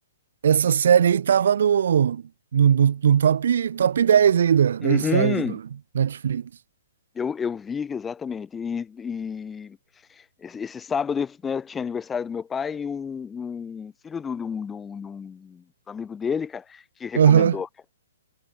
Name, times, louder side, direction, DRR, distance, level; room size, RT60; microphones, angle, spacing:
voice 1, 0.4-2.2 2.5-5.6 6.0-6.4 17.2-17.6, right 8 dB, 55° right, 0.3 m, -19 dB
voice 2, 4.8-5.6 7.1-9.8 10.4-17.7, left 6 dB, 10° left, 3.0 m, -30 dB
figure-of-eight pair, 120°, 0 cm